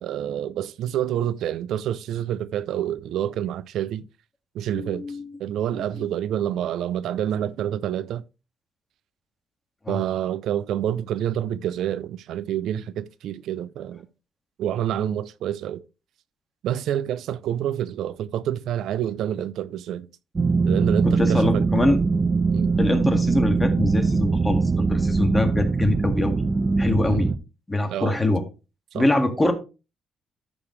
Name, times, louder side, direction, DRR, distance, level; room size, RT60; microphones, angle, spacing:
voice 1, 0.0-4.1 4.5-8.2 9.9-14.1 14.6-15.8 16.6-20.1 20.6-21.7 22.5-22.8 27.0-27.2 27.9-28.2 28.9-29.1, right 10 dB, 80° right, 0.4 m, -28 dB
voice 2, 4.7-5.3 9.9-10.0 21.0-22.0 22.8-26.3 26.8-27.3 27.7-28.4 28.9-29.5, left 2 dB, 15° left, 2.0 m, -23 dB
sound 1, 20.4-27.4, right 4 dB, 30° right, 0.7 m, -22 dB
13.0 x 5.2 x 3.2 m
cardioid pair, 90°, 0 cm